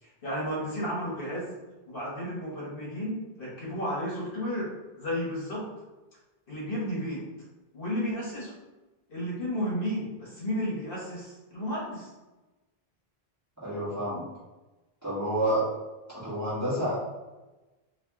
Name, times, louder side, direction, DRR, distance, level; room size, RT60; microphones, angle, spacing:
voice 1, 0.0-1.5 1.9-4.7 5.0-5.7 6.5-7.3 7.7-8.5 9.1-12.1, equal, 60° left, -5 dB, 1.2 m, -33 dB
voice 2, 13.6-14.2 15.0-15.6 16.1-17.0, right 1 dB, 15° right, -10 dB, 1.4 m, -29 dB
2.8 x 2.8 x 3.5 m, 1.1 s
omnidirectional pair, 1.1 m